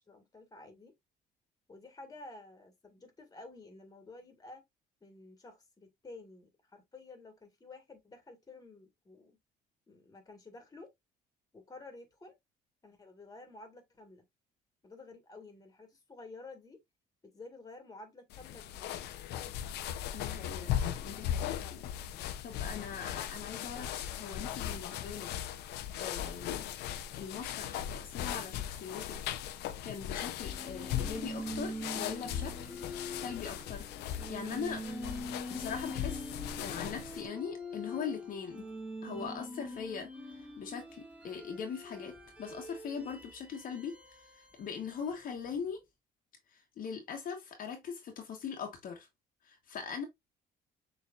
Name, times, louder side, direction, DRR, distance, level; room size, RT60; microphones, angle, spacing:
voice 1, 0.1-0.9 1.7-4.6 5.0-9.4 9.9-10.9 11.5-12.4 12.8-14.2 14.8-16.8 17.2-19.0, left 2 dB, 20° left, 1.6 m, -52 dB
sound 1, 18.3-37.3, left 10 dB, 80° left, 0.6 m, -38 dB
voice 2, 20.1-20.8 21.0-21.9 22.4-25.3 26.0-26.6 26.9-29.2 29.8-32.5 33.1-34.8 35.5-36.3 36.6-38.6 39.0-42.1 42.4-45.8 46.5-49.1 49.4-50.0, left 6 dB, 55° left, 1.1 m, -41 dB
sound 2, 30.4-45.5, left 1 dB, 5° right, 1.5 m, -44 dB
6.6 x 3.3 x 2.4 m
cardioid pair, 110°, 17 cm